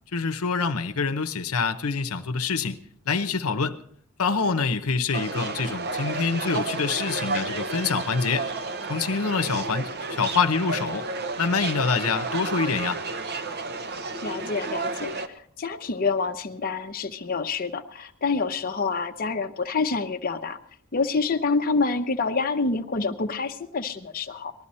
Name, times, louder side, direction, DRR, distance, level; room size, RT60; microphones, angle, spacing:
voice 1, 0.1-2.8 3.1-3.8 4.2-8.5 8.9-11.1 11.4-13.0, left 5 dB, 75° left, 0.8 m, -26 dB
sound 1, 5.1-15.3, right 3 dB, 50° right, 0.9 m, -31 dB
voice 2, 14.2-20.6 20.9-24.5, left 4 dB, 45° left, 0.7 m, -27 dB
19.0 x 13.0 x 4.3 m
head